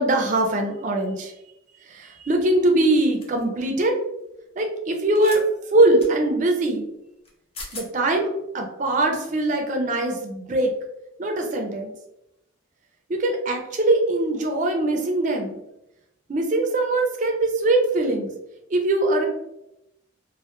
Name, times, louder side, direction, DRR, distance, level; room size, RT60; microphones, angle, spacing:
voice 1, 0.0-1.3 1.9-3.9 4.6-5.4 5.7-6.9 7.7-8.3 8.5-10.7 11.2-11.9 13.1-15.6 16.3-18.3 18.7-19.3, right 2 dB, 40° right, 3 dB, 0.3 m, -22 dB
sound 1, 3.2-3.4 5.1-5.4 6.0-6.1 7.2-7.3 7.5-7.9, left 3 dB, 30° left, 0.4 m, -37 dB
2.2 x 2.0 x 2.8 m, 0.87 s
head